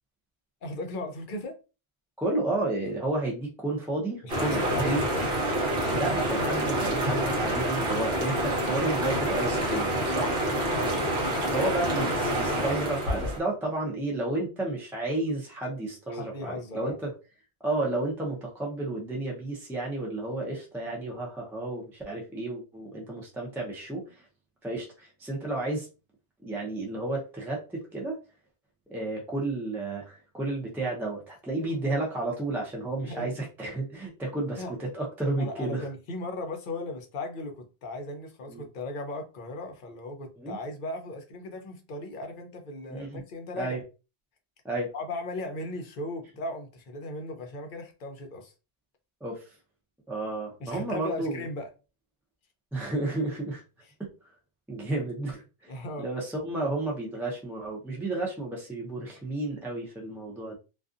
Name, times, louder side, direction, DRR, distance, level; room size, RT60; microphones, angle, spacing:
voice 1, 0.6-1.6 4.2-5.0 10.7-11.0 16.1-17.0 33.0-33.3 34.6-34.7 35.4-43.8 44.9-48.5 50.6-51.7 55.7-56.1, left 2 dB, 55° left, 0.7 m, -37 dB
voice 2, 2.2-5.0 5.9-10.3 11.5-17.1 17.6-24.3 24.6-25.9 26.4-28.2 28.9-35.9 38.5-38.6 40.4-40.6 42.9-43.2 43.5-43.8 44.6-44.9 49.2-49.6 50.1-51.5 52.7-53.6 54.0-54.3 54.7-60.6, right 2 dB, 5° right, 0.4 m, -32 dB
sound 1, 4.3-13.4, right 1 dB, 55° right, 1.0 m, -27 dB
2.5 x 2.3 x 2.4 m
omnidirectional pair, 1.1 m